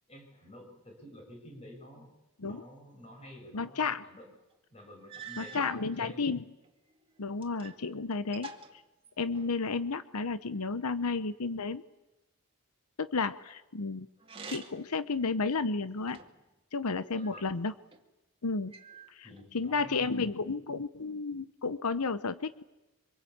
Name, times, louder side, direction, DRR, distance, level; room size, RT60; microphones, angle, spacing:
voice 1, 0.1-4.3 4.7-6.3 17.1-17.6 19.2-20.4, left 1 dB, 30° left, 3 dB, 7.9 m, -51 dB
voice 2, 3.5-4.0 5.4-6.5 7.2-8.5 9.2-11.8 13.0-14.1 14.5-16.2 16.7-17.7 18.4-18.7 19.1-19.3 19.5-22.6, left 4 dB, 85° left, 13 dB, 0.9 m, -32 dB
sound 1, 4.5-4.6 5.1-5.9 6.6-7.8 8.1-9.6 14.2-15.0 15.5-16.5 17.2-18.0 18.7-19.5, right 4 dB, 25° right, 2.4 m, -47 dB
26.0 x 25.5 x 8.8 m, 1.0 s
head